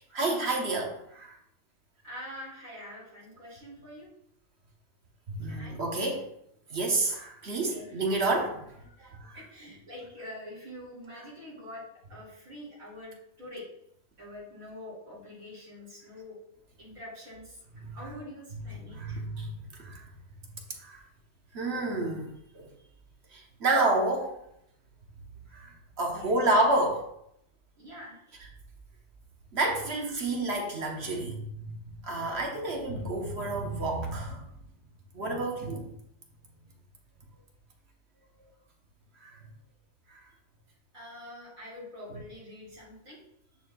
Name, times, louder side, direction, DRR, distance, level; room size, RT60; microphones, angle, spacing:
voice 1, 0.1-1.3 5.3-6.2 6.7-8.6 9.0-9.4 17.9-18.0 18.9-20.0 20.8-21.0 21.5-22.7 23.3-24.3 25.5-25.7 26.0-27.1 29.5-31.7 32.0-34.5 35.1-35.9 39.2-39.3, right 2 dB, 50° right, 0 dB, 1.3 m, -29 dB
voice 2, 2.0-4.1 5.4-5.8 7.6-7.9 8.3-8.5 9.0-11.8 12.1-13.6 14.2-16.4 16.8-17.6 17.9-19.2 26.1-26.4 27.8-28.4 40.9-43.2, left 1 dB, 70° right, -9 dB, 2.8 m, -45 dB
9.9 x 4.3 x 2.3 m, 0.74 s
omnidirectional pair, 1.5 m